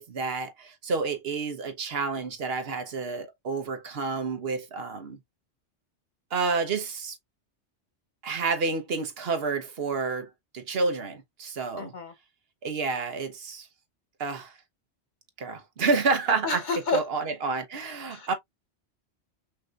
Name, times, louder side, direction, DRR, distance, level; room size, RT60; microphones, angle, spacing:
voice 1, 0.0-5.2 6.3-7.2 8.2-10.3 10.5-11.9 12.6-13.7 14.2-14.5 15.4-16.6 16.9-18.3, right 4 dB, 55° right, 1.1 m, -29 dB
voice 2, 11.8-12.1 16.4-17.0 18.1-18.3, left 4 dB, 45° left, 1.0 m, -29 dB
5.7 x 2.7 x 2.4 m
omnidirectional pair, 1.2 m